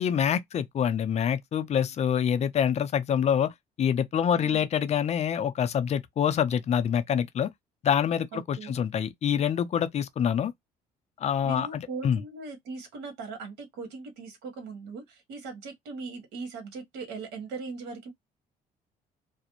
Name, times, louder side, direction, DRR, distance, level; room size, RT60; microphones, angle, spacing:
voice 1, 0.0-3.5 3.8-7.5 7.8-10.5 11.2-12.2, left 8 dB, 40° left, 0.4 m, -26 dB
voice 2, 4.3-4.7 8.3-8.8 11.4-18.1, right 4 dB, 85° right, 1.2 m, -39 dB
2.4 x 2.0 x 2.9 m
cardioid pair, 110°, 17 cm